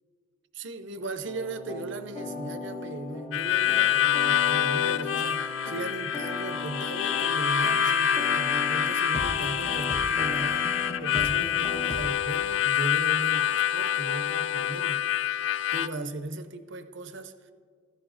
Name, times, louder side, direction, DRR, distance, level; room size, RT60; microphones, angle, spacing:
voice 1, 0.5-15.0 15.7-17.3, right 2 dB, 55° right, 10 dB, 0.6 m, -37 dB
sound 1, 1.2-12.2, left 2 dB, 30° left, 0.7 m, -38 dB
Harmonica, 3.3-15.9, left 9 dB, 60° left, 0.3 m, -26 dB
16.0 x 14.5 x 2.5 m, 2.1 s
head